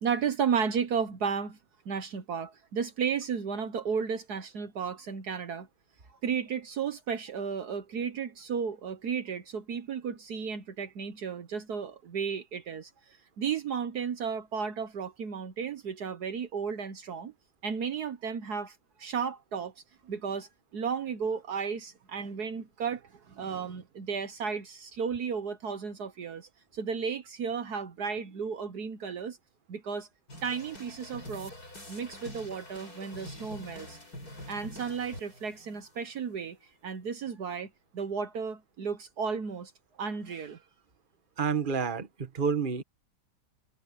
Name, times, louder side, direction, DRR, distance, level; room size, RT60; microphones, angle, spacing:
voice 1, 0.0-1.6 1.8-5.7 6.2-12.9 13.4-17.3 17.6-19.7 20.0-29.4 29.7-30.1 30.4-31.5 31.9-34.0 34.5-36.6 36.8-39.7 40.0-40.6, right 6 dB, 65° right, 1.6 m, -33 dB
sound 1, 30.3-36.3, left 1 dB, 55° left, 8.6 m, -46 dB
voice 2, 41.4-42.8, right 6 dB, 30° right, 1.6 m, -29 dB
omnidirectional pair, 1.9 m